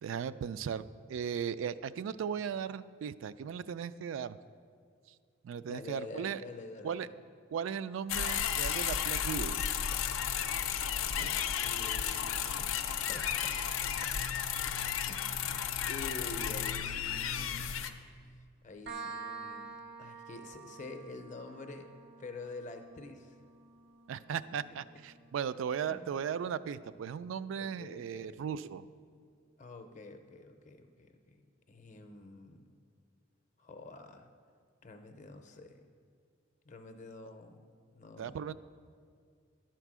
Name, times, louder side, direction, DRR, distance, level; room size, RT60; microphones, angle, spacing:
voice 1, 0.0-0.8 1.1-4.4 5.4-6.4 6.8-7.1 7.5-9.7 24.1-28.8 38.2-38.5, right 7 dB, 80° right, 16 dB, 0.3 m, -37 dB
voice 2, 5.7-7.2 11.6-13.5 14.0-14.1 15.1-17.7 18.6-19.7 20.0-21.9 22.2-23.4 25.5-26.2 27.6-28.4 29.6-31.4 31.7-32.7 33.6-34.3 34.8-35.9 36.6-37.6 37.9-38.4, left 2 dB, 40° left, 6 dB, 0.6 m, -47 dB
sound 1, 8.1-17.9, left 8 dB, 90° left, 0.5 m, -33 dB
sound 2, 18.9-26.3, right 5 dB, 60° right, 0.7 m, -48 dB
11.5 x 4.5 x 6.0 m, 2.1 s
head